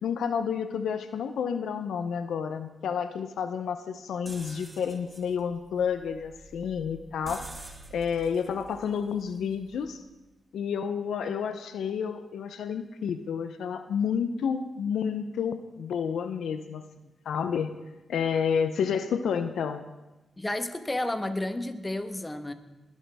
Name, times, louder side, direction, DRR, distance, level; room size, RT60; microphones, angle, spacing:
voice 1, 0.0-7.4 7.9-10.0 10.5-16.8 17.3-17.7 18.1-19.8, left 7 dB, 80° left, 10 dB, 0.6 m, -30 dB
sound 1, 4.3-10.1, right 2 dB, 20° right, 1.8 m, -48 dB
voice 2, 20.4-22.5, left 1 dB, 20° left, 9 dB, 1.2 m, -31 dB
20.5 x 11.5 x 3.5 m, 1.1 s
cardioid pair, 60°, 0 cm